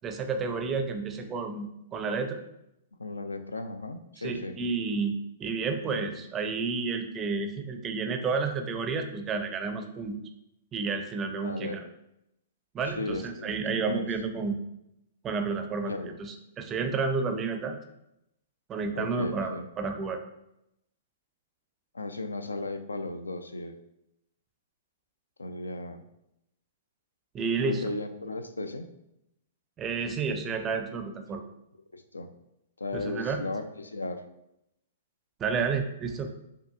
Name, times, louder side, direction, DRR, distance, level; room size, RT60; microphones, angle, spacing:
voice 1, 0.0-2.4 4.2-10.2 10.7-11.8 12.7-14.6 15.2-15.9 16.2-17.8 18.7-20.2 27.3-27.9 29.8-31.4 32.9-33.4 35.4-36.3, right 4 dB, 20° right, 6 dB, 0.4 m, -31 dB
voice 2, 3.0-4.5 5.9-6.1 11.3-11.8 13.0-14.1 15.8-16.2 18.9-19.6 21.9-23.7 25.4-26.0 27.6-28.9 31.9-32.3 32.8-34.2, left 2 dB, 80° left, 8 dB, 0.4 m, -36 dB
5.2 x 2.5 x 2.4 m, 0.82 s
figure-of-eight pair, 110°, 0 cm